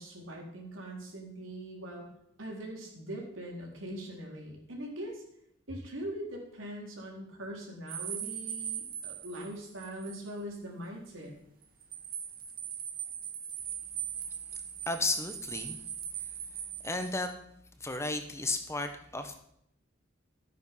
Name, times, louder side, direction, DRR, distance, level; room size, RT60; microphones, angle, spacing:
voice 1, 0.0-2.0 2.4-5.2 5.7-11.3, right 1 dB, 90° right, -1 dB, 4.1 m, -41 dB
sound 1, 7.9-10.2 10.5-10.6 11.6-17.3, right 9 dB, 50° right, 1.9 m, -40 dB
voice 2, 14.9-15.8 16.8-17.3 17.8-19.4, left 2 dB, 15° left, 7 dB, 1.1 m, -33 dB
13.5 x 9.3 x 5.6 m, 0.73 s
head